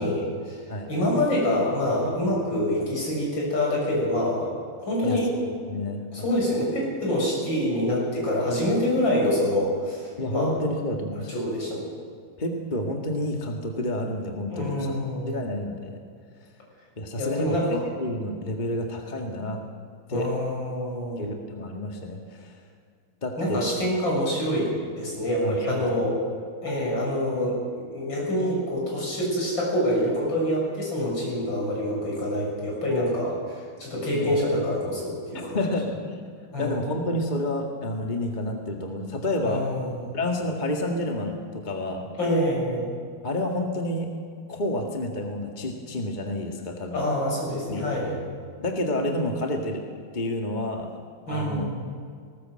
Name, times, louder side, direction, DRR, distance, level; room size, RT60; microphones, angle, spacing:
voice 1, 0.0-0.6 0.9-4.5 4.8-5.3 6.1-10.5 11.3-11.8 14.5-15.5 17.2-17.8 20.1-21.3 23.4-26.2 26.6-35.6 36.5-36.8 39.4-40.0 42.2-42.8 46.9-48.2 51.3-51.9, left 1 dB, 60° left, -3 dB, 7.5 m, -26 dB
voice 2, 5.0-6.4 10.2-11.4 12.4-14.9 15.3-16.0 16.4-16.5 17.0-19.6 20.1-20.3 21.2-22.6 23.2-23.7 25.4-26.1 34.1-34.4 35.5-36.2 36.6-39.7 40.1-42.1 43.2-44.1 44.5-47.0 47.7-47.9 48.6-49.8 50.1-50.9 51.3-51.7, left 1 dB, 25° left, 2 dB, 1.8 m, -30 dB
19.5 x 19.0 x 7.7 m, 2.2 s
omnidirectional pair, 2.3 m